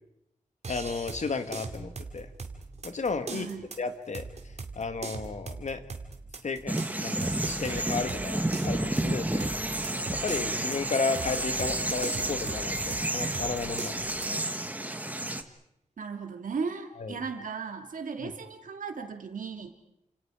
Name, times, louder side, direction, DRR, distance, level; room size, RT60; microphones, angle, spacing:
sound 1, 0.6-14.4, right 4 dB, 55° right, 2.4 m, -41 dB
voice 1, 0.7-2.3 2.8-3.5 3.8-4.3 4.8-5.8 6.4-9.5 9.8-9.9 10.2-14.4 17.0-17.2 18.2-18.3, left 4 dB, 65° left, 9 dB, 1.9 m, -33 dB
voice 2, 3.3-3.7 10.6-10.7 16.0-19.7, right 5 dB, 90° right, 5 dB, 2.6 m, -36 dB
sound 2, 6.7-15.4, right 1 dB, 10° right, 1.4 m, -31 dB
29.5 x 27.0 x 5.0 m, 0.80 s
wide cardioid pair, 125°, 13 cm